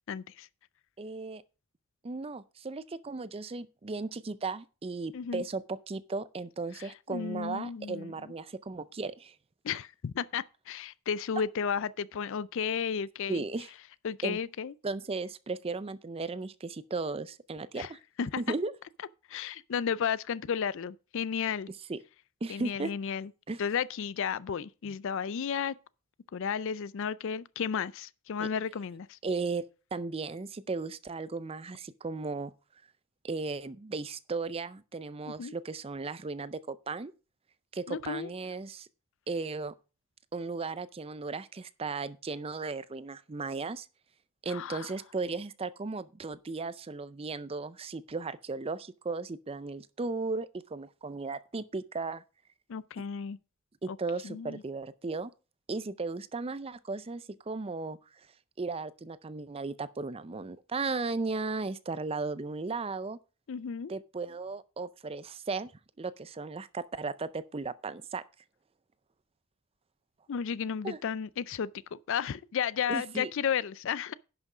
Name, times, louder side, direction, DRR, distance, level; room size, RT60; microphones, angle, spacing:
voice 1, 0.1-0.5 5.1-5.4 6.8-8.1 9.6-13.4 14.0-14.7 17.8-17.9 18.2-18.4 19.3-21.7 22.5-23.3 23.6-25.7 26.3-29.2 35.3-35.5 37.9-38.3 44.5-44.9 52.7-53.4 53.9-54.0 54.2-54.6 63.5-63.9 70.3-74.1, left 7 dB, 60° left, 0.4 m, -33 dB
voice 2, 1.0-1.4 2.0-9.3 13.3-13.7 14.2-14.4 14.8-18.0 18.4-18.7 21.9-22.0 22.4-22.9 23.5-23.6 24.9-25.0 28.4-28.5 29.2-29.6 29.9-32.5 33.2-37.1 37.7-38.9 39.3-39.7 40.3-43.9 44.4-52.2 53.8-55.3 55.7-58.0 58.6-63.2 63.9-65.7 66.0-68.2 70.8-71.0 72.9-73.3, right 3 dB, 25° right, 0.5 m, -36 dB
11.0 x 6.1 x 4.9 m
head